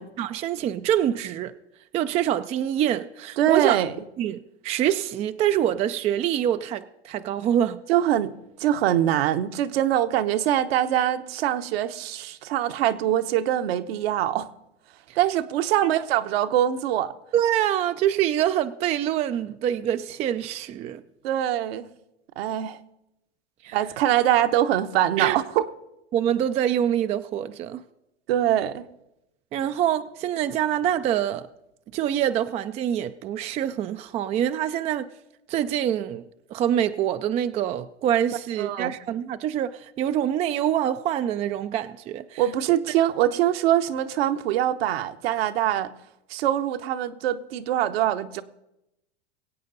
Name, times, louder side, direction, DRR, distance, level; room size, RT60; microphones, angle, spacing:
voice 1, 0.2-1.5 1.9-3.8 4.2-7.8 15.8-15.9 17.3-21.0 23.6-23.8 25.2-25.4 26.1-27.8 29.5-31.5 31.9-35.1 35.5-36.2 36.5-42.4, right 10 dB, 20° right, 0.3 m, -25 dB
voice 2, 3.4-3.9 7.9-8.3 8.6-14.5 15.2-17.1 21.2-21.9 22.4-22.8 23.7-25.7 28.3-28.8 38.6-38.9 42.4-45.9 46.3-48.4, right 12 dB, 60° right, 1.0 m, -23 dB
22.0 x 8.5 x 4.0 m
hypercardioid pair, 100°, 34 cm